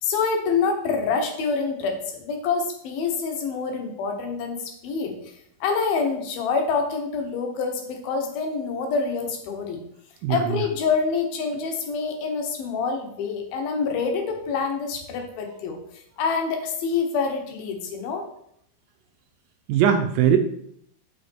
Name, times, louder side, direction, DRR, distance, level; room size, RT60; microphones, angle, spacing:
voice 1, 0.0-5.2 5.6-9.8 10.3-15.8 16.2-18.2, left 5 dB, 75° left, 4 dB, 3.0 m, -26 dB
voice 2, 10.2-10.6 19.7-20.4, right 9 dB, 75° right, 7 dB, 2.2 m, -20 dB
8.3 x 6.3 x 4.5 m, 0.71 s
omnidirectional pair, 4.4 m